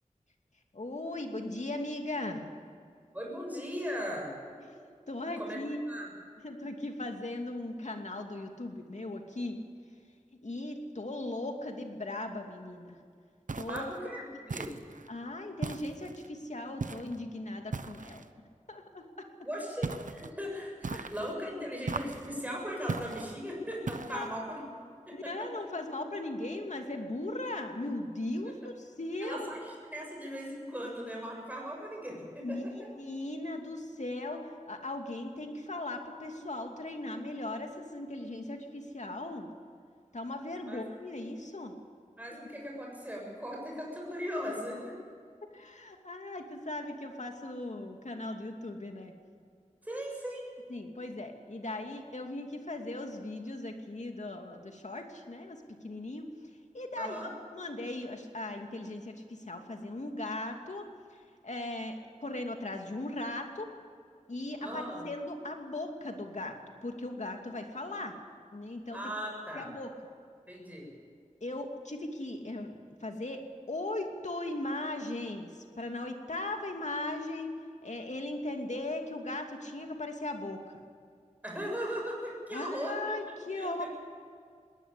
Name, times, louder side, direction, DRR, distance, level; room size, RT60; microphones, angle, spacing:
voice 1, 0.7-2.5 4.8-5.8 6.4-9.6 10.4-13.0 13.6-13.9 15.1-18.2 18.7-19.3 20.9-21.1 24.1-24.3 25.1-29.5 32.4-39.5 40.1-41.7 42.3-42.4 45.5-49.1 50.7-56.3 56.7-60.9 61.4-63.7 64.3-66.6 66.8-68.2 68.5-69.0 69.5-69.9 71.4-73.4 73.7-77.5 77.8-80.8 82.5-83.8, left 2 dB, 65° left, 4 dB, 2.7 m, -38 dB
voice 2, 3.1-4.4 5.4-5.6 5.9-6.1 13.6-14.7 19.4-24.7 25.1-25.3 29.2-32.7 40.7-40.8 42.2-45.0 49.8-50.4 57.0-57.3 64.6-65.1 68.9-69.7 70.5-70.9 81.4-83.1 83.5-83.9, equal, 10° right, -2 dB, 6.9 m, -38 dB
sound 1, 13.5-14.0 14.5-15.1 15.6-16.3 16.8-17.2 17.7-18.3 19.8-20.3 20.8-21.4 21.9-22.4 22.9-23.4 23.9-24.4, right 4 dB, 90° right, 0.9 m, -38 dB
21.0 x 18.5 x 8.5 m, 2.1 s
wide cardioid pair, 60°, 13 cm